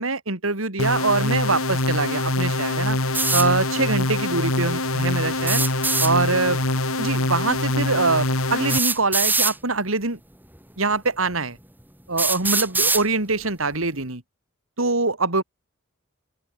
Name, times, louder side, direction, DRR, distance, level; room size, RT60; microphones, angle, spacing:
voice 1, 0.0-3.0 3.3-5.6 6.0-6.6 7.0-10.2 10.8-11.6 12.1-14.2 14.8-15.4, right 3 dB, 75° right, 3.2 m, -23 dB
sound 1, 0.8-8.8, left 2 dB, 85° left, 5.3 m, -24 dB
sound 2, 3.1-3.5 5.4-6.1 7.6-7.7 8.7-9.6 10.6-10.7 11.3-11.4 12.2-13.0, right 3 dB, 10° right, 4.1 m, -22 dB
open air
head